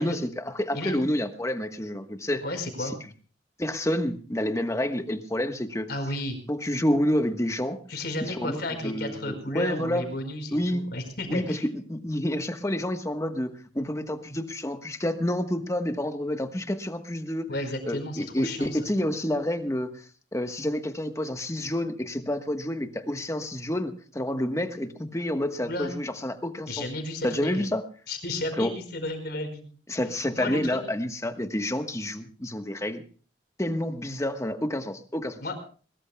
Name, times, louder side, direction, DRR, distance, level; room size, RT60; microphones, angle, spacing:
voice 1, 0.0-2.4 2.8-2.9 3.6-5.9 6.5-7.8 8.2-8.6 8.8-10.0 10.5-10.8 11.3-17.5 17.8-19.9 20.3-26.9 27.2-27.8 28.6-28.7 29.9-33.0 33.6-35.4, left 1 dB, 15° left, 8 dB, 1.2 m, -29 dB
voice 2, 2.4-2.9 5.9-6.4 7.9-11.6 17.5-18.8 25.6-25.9 26.7-27.7 28.1-29.7 30.3-30.8 35.4-35.6, left 1 dB, 60° left, 6 dB, 4.9 m, -33 dB
22.0 x 21.0 x 2.2 m, 0.40 s
head